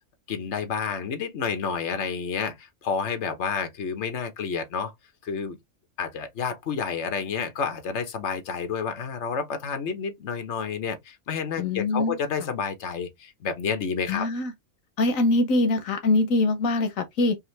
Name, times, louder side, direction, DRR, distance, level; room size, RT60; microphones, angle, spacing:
voice 1, 0.3-4.9 5.2-5.6 6.0-14.3, left 6 dB, 60° left, 1.3 m, -30 dB
voice 2, 11.6-12.5 14.1-14.5 15.0-17.4, left 2 dB, 85° left, 1.3 m, -23 dB
5.5 x 2.7 x 3.2 m
omnidirectional pair, 1.4 m